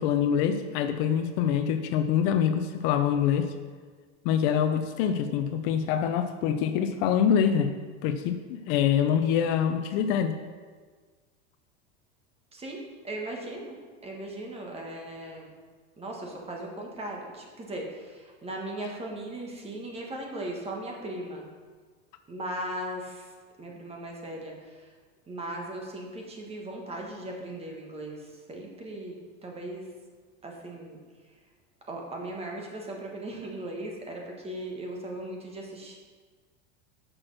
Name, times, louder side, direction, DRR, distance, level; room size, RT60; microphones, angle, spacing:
voice 1, 0.0-3.5 4.2-7.7 8.0-10.4, left 8 dB, 55° left, 8 dB, 0.6 m, -25 dB
voice 2, 12.5-13.8 14.0-15.5 16.0-21.5 22.3-23.3 23.6-24.9 25.3-29.9 30.4-31.0 31.9-36.0, right 1 dB, 15° right, 0 dB, 1.4 m, -38 dB
6.2 x 6.1 x 6.4 m, 1.5 s
supercardioid pair, 140°, 34 cm